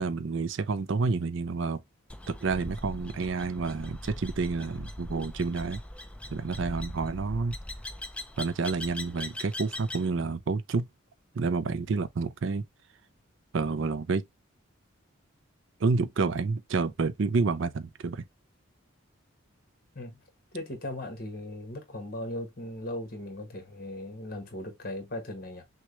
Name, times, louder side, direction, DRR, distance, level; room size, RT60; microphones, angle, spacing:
voice 1, 0.0-1.8 2.3-5.8 6.3-7.6 8.4-10.9 11.3-12.6 13.5-14.2 15.8-18.3, right 4 dB, 65° right, 0.5 m, -29 dB
sound 1, 2.1-10.1, left 1 dB, 5° left, 0.4 m, -40 dB
voice 2, 20.5-25.6, left 1 dB, 45° left, 1.5 m, -38 dB
6.1 x 2.3 x 3.0 m
head